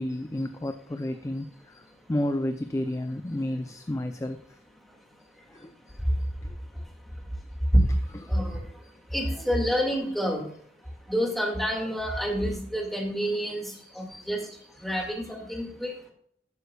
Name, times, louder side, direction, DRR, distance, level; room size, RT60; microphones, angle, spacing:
voice 1, 0.0-4.4 5.5-5.7 8.1-8.3 11.7-12.1 13.7-13.8 15.0-15.3, left 1 dB, 20° left, 8 dB, 0.5 m, -32 dB
voice 2, 5.4-8.8 9.1-10.5 10.8-16.0, equal, ahead, 1 dB, 2.1 m, -29 dB
13.5 x 9.2 x 2.3 m, 0.65 s
head